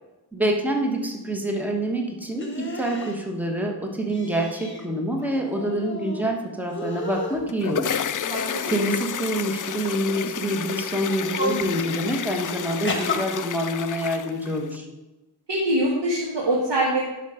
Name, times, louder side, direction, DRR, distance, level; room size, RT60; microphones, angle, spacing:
voice 1, 0.3-8.0 8.7-14.8, right 1 dB, 5° right, 2 dB, 1.4 m, -26 dB
sound 1, 2.4-3.2 4.1-4.9 5.2-6.3 6.7-7.4 8.1-9.2 10.0-10.3 11.0-11.7 12.8-13.2, left 1 dB, 25° left, 1.6 m, -32 dB
sound 2, 7.3-14.8, left 9 dB, 50° left, 0.4 m, -31 dB
voice 2, 8.3-8.6 15.5-17.0, right 1 dB, 80° right, -4 dB, 1.9 m, -23 dB
11.5 x 5.5 x 5.0 m, 1.1 s
wide cardioid pair, 90°, 42 cm